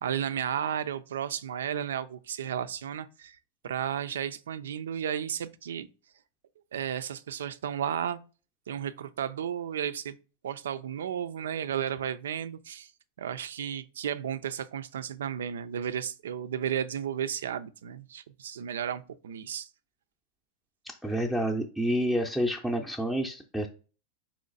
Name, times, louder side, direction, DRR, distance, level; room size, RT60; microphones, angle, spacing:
voice 1, 0.0-3.4 3.6-5.9 6.7-8.2 8.7-10.2 10.4-12.9 13.2-19.7, right 9 dB, 85° right, 0.4 m, -33 dB
voice 2, 20.8-23.7, equal, ahead, 0.6 m, -29 dB
4.2 x 3.1 x 3.9 m
hypercardioid pair, 125°, 0 cm